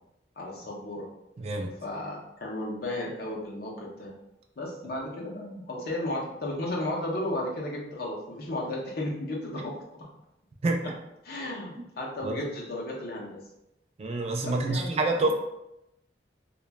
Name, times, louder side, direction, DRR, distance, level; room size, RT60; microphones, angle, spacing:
voice 1, 0.4-1.1 1.8-4.1 4.6-9.7 10.0-10.1 10.8-10.9 11.2-13.4 14.4-15.3, left 1 dB, 60° left, -2 dB, 0.7 m, -34 dB
voice 2, 1.4-1.7 10.6-10.8 12.2-12.3 14.0-15.3, right 2 dB, 35° right, 2 dB, 0.3 m, -27 dB
2.9 x 2.2 x 2.2 m, 0.84 s
head